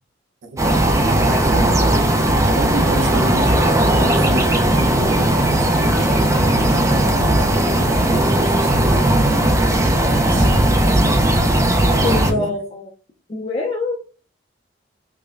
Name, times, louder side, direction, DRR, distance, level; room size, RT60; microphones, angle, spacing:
voice 1, 0.4-0.9 1.3-10.9 11.7-12.5, right 1 dB, 85° right, 0.8 m, -32 dB
sound 1, 0.6-12.3, right 1 dB, 15° right, 0.4 m, -17 dB
voice 2, 12.0-12.8 13.3-13.9, left 3 dB, 35° left, 0.5 m, -23 dB
4.8 x 2.2 x 2.5 m
head